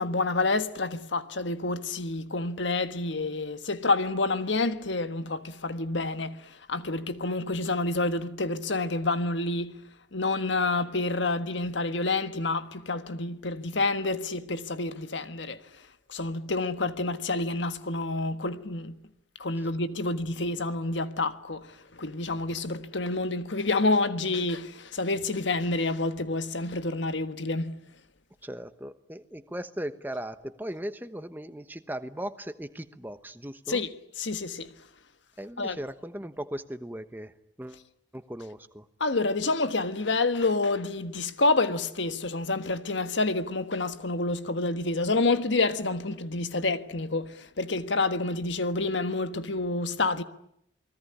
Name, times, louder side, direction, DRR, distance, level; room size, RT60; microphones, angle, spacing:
voice 1, 0.0-9.7 10.1-15.6 16.1-18.9 19.4-27.8 33.7-33.9 34.2-34.7 35.6-35.8 39.0-50.2, left 3 dB, 80° left, 1.5 m, -28 dB
voice 2, 28.4-33.8 35.4-37.3 37.6-37.8 38.1-38.9, right 1 dB, 10° right, 1.1 m, -38 dB
28.5 x 20.0 x 9.9 m
head